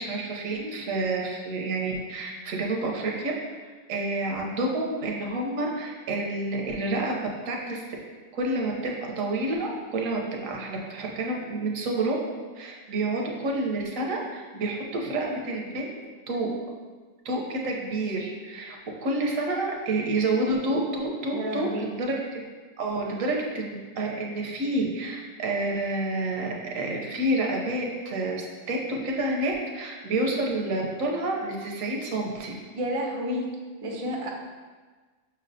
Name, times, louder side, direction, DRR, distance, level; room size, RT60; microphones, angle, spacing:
voice 1, 0.0-3.3 3.6-7.2 7.5-7.8 8.3-12.2 12.6-15.9 16.3-16.5 17.2-22.4 22.8-28.8 29.0-32.5, right 2 dB, 80° right, 0 dB, 1.1 m, -29 dB
voice 2, 21.3-21.9 32.8-33.5 33.8-34.3, equal, 55° right, 0 dB, 0.3 m, -30 dB
5.7 x 3.2 x 2.6 m, 1.4 s
omnidirectional pair, 1.4 m